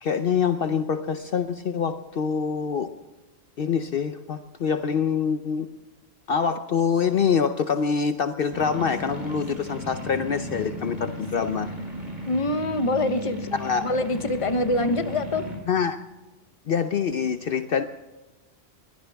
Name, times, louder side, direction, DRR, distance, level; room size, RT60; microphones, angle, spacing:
voice 1, 0.0-2.9 3.6-5.7 6.3-11.7 13.5-13.8 15.7-16.0 16.7-17.8, left 6 dB, 60° left, 9 dB, 0.9 m, -25 dB
sound 1, 8.5-15.6, equal, 45° right, 4.4 m, -35 dB
voice 2, 12.3-13.5 13.8-15.5, left 1 dB, 30° left, 9 dB, 1.0 m, -25 dB
22.5 x 17.0 x 3.5 m, 1.1 s
omnidirectional pair, 1.1 m